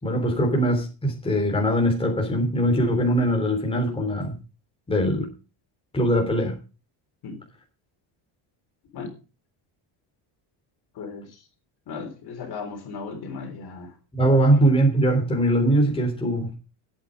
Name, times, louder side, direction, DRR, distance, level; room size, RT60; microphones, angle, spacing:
voice 1, 0.0-4.4 4.9-5.3 5.9-6.5 14.1-16.5, right 1 dB, 10° left, 1 dB, 3.6 m, -21 dB
voice 2, 10.9-11.5 11.9-14.0, left 4 dB, 50° left, 4 dB, 3.8 m, -36 dB
14.0 x 9.0 x 5.1 m, 0.33 s
cardioid pair, 160°, 50 cm